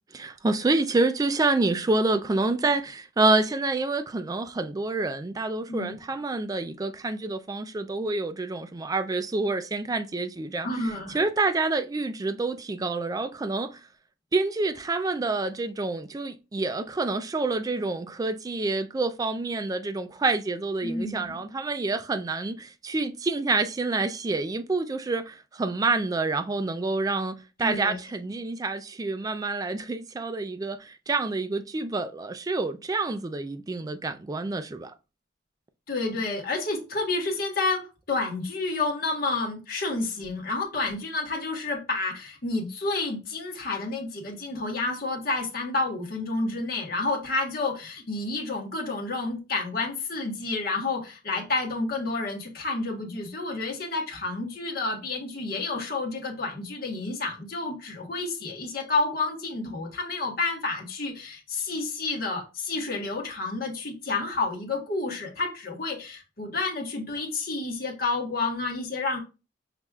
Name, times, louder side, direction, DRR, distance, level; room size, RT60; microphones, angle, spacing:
voice 1, 0.1-10.7 11.1-13.8 14.3-34.9, right 3 dB, 20° right, 0.3 m, -27 dB
voice 2, 5.7-6.0 10.6-11.2 20.8-21.4 27.6-28.0 35.9-69.2, left 3 dB, 55° left, 1.2 m, -30 dB
5.8 x 3.0 x 2.3 m
head